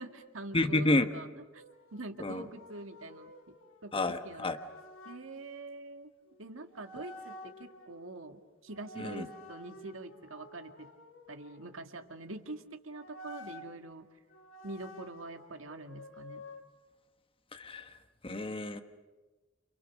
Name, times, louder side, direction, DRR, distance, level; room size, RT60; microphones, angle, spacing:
voice 1, 0.0-1.6 1.9-3.6 3.8-4.5 5.1-6.1 6.4-10.9 11.3-14.1 14.6-16.4, right 2 dB, 85° right, 6 dB, 2.1 m, -45 dB
voice 2, 0.5-1.1 2.2-2.5 3.9-4.6 9.0-9.3 17.5-17.9 18.2-18.8, left 2 dB, 25° left, 8 dB, 1.2 m, -30 dB
sound 1, 1.5-5.2 6.3-6.4 6.7-8.0 8.7-12.1 12.9-13.7 14.3-16.6, left 1 dB, 80° left, 2.4 m, -51 dB
29.5 x 29.0 x 6.5 m, 1.2 s
head